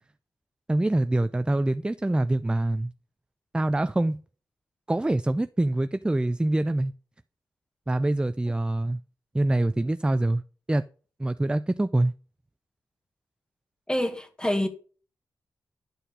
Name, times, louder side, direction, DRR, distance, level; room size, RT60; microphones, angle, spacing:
voice 1, 0.7-2.9 3.5-4.2 4.9-6.9 7.9-9.0 9.3-10.4 10.7-10.8 11.2-12.1, right 1 dB, 10° right, 0.4 m, -25 dB
voice 2, 13.9-14.7, left 1 dB, 10° left, 1.7 m, -26 dB
10.5 x 4.5 x 5.1 m
supercardioid pair, 45°, 8 cm